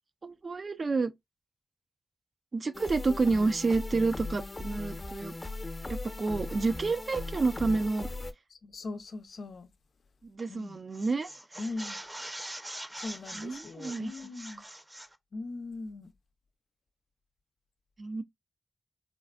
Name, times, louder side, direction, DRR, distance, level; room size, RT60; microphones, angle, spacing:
voice 1, 0.2-1.1 2.5-5.3 5.9-8.1 10.3-11.3 13.3-14.1 18.0-18.2, right 3 dB, 55° right, 0.6 m, -29 dB
sound 1, 2.7-8.3, left 2 dB, 30° left, 0.8 m, -38 dB
voice 2, 8.5-9.7 10.5-10.8 11.6-12.0 13.0-14.6 15.3-16.1, left 3 dB, 70° left, 0.5 m, -40 dB
sound 2, 10.4-10.6 10.9-15.2, right 1 dB, 20° right, 0.7 m, -43 dB
3.8 x 2.4 x 2.2 m
cardioid pair, 45°, 0 cm